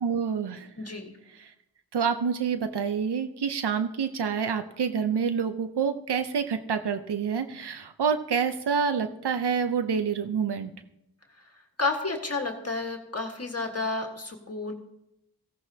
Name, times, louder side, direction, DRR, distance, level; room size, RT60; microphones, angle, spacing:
voice 1, 0.0-0.7 1.3-1.5 1.9-10.7, right 6 dB, 85° right, 9 dB, 0.8 m, -27 dB
voice 2, 0.8-1.1 11.4-11.5 11.8-14.7, left 3 dB, 40° left, 2 dB, 1.6 m, -31 dB
18.0 x 15.5 x 2.8 m, 0.84 s
wide cardioid pair, 70°, 39 cm